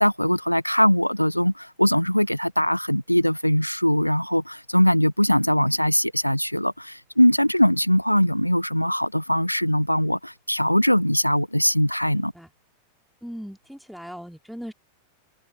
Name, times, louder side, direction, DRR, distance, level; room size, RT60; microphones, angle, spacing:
voice 1, 0.0-12.3, equal, 90° left, 1.0 m, -21 dB
voice 2, 12.1-12.5 13.2-14.7, equal, ahead, 3.3 m, -39 dB
figure-of-eight pair, 90°, 0 cm